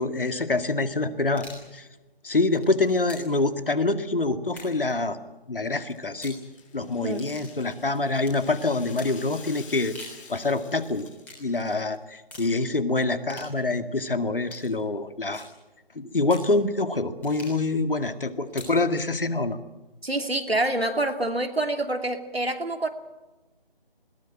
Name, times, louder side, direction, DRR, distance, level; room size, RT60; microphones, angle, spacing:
voice 1, 0.0-1.5 1.7-1.9 2.2-5.2 5.5-6.4 6.7-9.9 10.3-11.1 11.4-15.5 15.9-19.6, left 3 dB, 65° left, 10 dB, 2.1 m, -26 dB
sound 1, 1.2-1.7 2.3-3.4 4.5-4.9 6.1-6.4 7.2-7.5 8.2-8.4 9.0-9.2 9.8-10.2 11.2-11.4 12.3-12.5 13.3-13.5 14.5-14.7 15.3-15.6 16.3-16.5 17.2-17.7 18.5-18.8, left 2 dB, 5° left, 3.5 m, -44 dB
Rattle (instrument), 5.7-12.0, left 5 dB, 35° left, 6.4 m, -49 dB
voice 2, 20.0-22.9, right 2 dB, 90° right, 6 dB, 2.8 m, -26 dB
21.0 x 18.5 x 9.0 m, 1.1 s
figure-of-eight pair, 155°, 30 cm